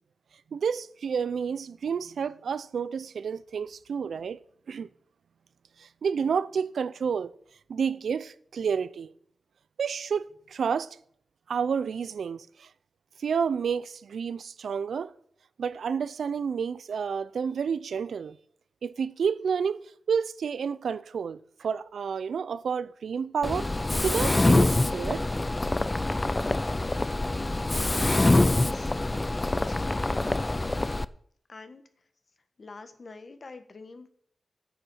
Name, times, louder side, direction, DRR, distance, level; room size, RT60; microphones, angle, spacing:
voice 1, 0.5-4.4 4.7-4.9 5.8-7.3 7.7-9.1 9.8-10.9 11.5-12.7 13.2-15.1 15.6-18.4 18.8-23.7 24.0-25.3, right 6 dB, 85° right, 0.5 m, -30 dB
Mechanisms, 23.4-31.0, left 2 dB, 20° left, 0.4 m, -25 dB
voice 2, 28.4-28.9 29.5-30.2 31.5-31.8 32.6-34.1, left 3 dB, 50° left, 1.4 m, -46 dB
9.4 x 7.0 x 7.6 m
wide cardioid pair, 90°, 0 cm